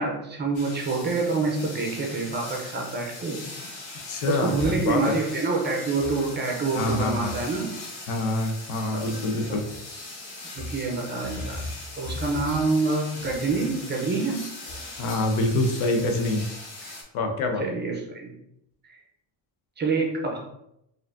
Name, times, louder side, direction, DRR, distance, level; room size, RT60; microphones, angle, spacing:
voice 1, 0.0-3.4 4.3-7.7 8.9-9.1 9.5-9.6 10.6-14.4 16.8-17.0 17.6-18.3 18.9-19.0 19.8-20.4, right 3 dB, 25° right, 0 dB, 0.5 m, -27 dB
sound 1, 0.5-17.0, left 2 dB, 40° left, 1.0 m, -40 dB
voice 2, 4.1-5.1 6.7-7.3 8.1-9.6 15.0-16.4 17.1-17.6, left 2 dB, 75° left, 5 dB, 0.8 m, -25 dB
4.6 x 2.6 x 2.5 m, 0.80 s
cardioid pair, 170°, 47 cm